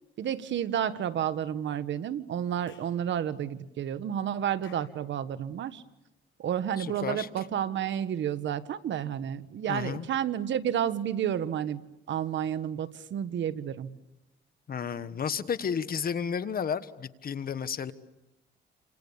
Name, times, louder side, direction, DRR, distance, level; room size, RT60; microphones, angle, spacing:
voice 1, 0.2-5.8 6.4-11.8 12.1-14.0, right 9 dB, 65° right, 13 dB, 1.4 m, -31 dB
Clapping / Chirp tweet, 2.7-3.0 4.6-5.0, left 9 dB, 75° left, 7.2 m, -56 dB
voice 2, 6.8-7.3 9.7-10.1 14.7-17.9, left 7 dB, 50° left, 13 dB, 1.5 m, -32 dB
29.5 x 27.0 x 7.2 m, 0.91 s
cardioid pair, 90°, 20 cm